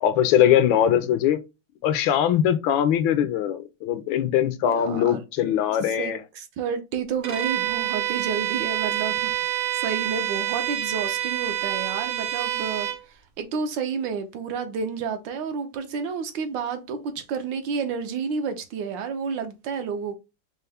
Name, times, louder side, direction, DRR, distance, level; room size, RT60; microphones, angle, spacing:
voice 1, 0.0-1.4 1.8-6.2, left 10 dB, 80° left, 1.3 m, -21 dB
voice 2, 4.7-5.2 6.0-12.9 13.4-20.2, right 6 dB, 75° right, 1.3 m, -30 dB
Bowed string instrument, 7.2-13.0, right 11 dB, 55° right, 0.9 m, -27 dB
5.4 x 2.0 x 3.4 m
omnidirectional pair, 2.2 m